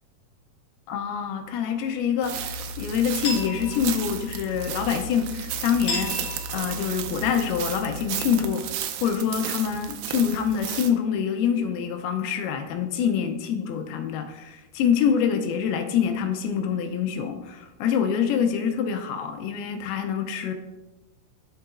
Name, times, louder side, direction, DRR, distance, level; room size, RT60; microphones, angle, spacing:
voice 1, 0.9-20.5, left 7 dB, 80° left, 6 dB, 2.4 m, -26 dB
sound 1, 2.2-10.9, right 10 dB, 85° right, 2.1 m, -34 dB
sound 2, 2.3-8.4, left 2 dB, 45° left, 1.8 m, -35 dB
12.0 x 4.7 x 2.4 m, 1.0 s
omnidirectional pair, 4.7 m